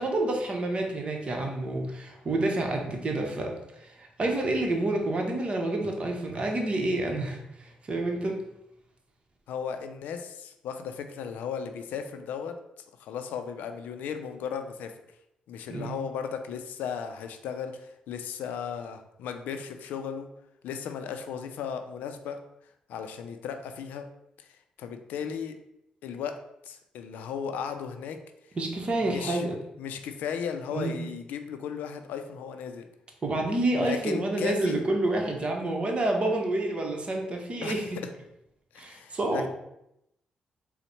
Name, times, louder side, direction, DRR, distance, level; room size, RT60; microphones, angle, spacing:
voice 1, 0.0-8.4 15.7-16.0 28.6-29.5 30.7-31.0 33.2-38.0 38.8-39.5, right 2 dB, 40° right, 2 dB, 0.9 m, -28 dB
voice 2, 9.5-12.6 13.0-14.9 15.5-20.3 20.6-22.4 22.9-24.1 24.4-25.6 26.0-26.4 26.6-28.2 29.0-29.5 29.8-32.9 33.8-34.9 37.6-37.8 38.7-39.5, left 7 dB, 90° left, 7 dB, 0.4 m, -36 dB
4.0 x 2.1 x 4.3 m, 0.83 s
cardioid pair, 75°, 3 cm